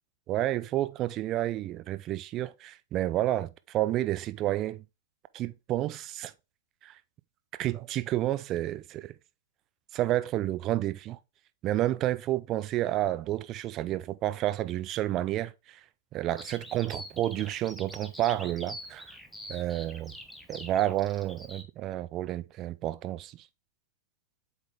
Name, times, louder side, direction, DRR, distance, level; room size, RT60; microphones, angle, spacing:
voice 1, 0.3-4.8 5.3-6.3 6.8-6.9 7.6-9.1 9.9-11.2 11.6-15.5 16.1-19.0 19.5-20.1 20.5-23.3, right 14 dB, 30° right, 0.5 m, -30 dB
Bird vocalization bird call bird song, 16.4-21.6, equal, ahead, 0.9 m, -45 dB
8.1 x 3.9 x 3.3 m
figure-of-eight pair, 105°, 0 cm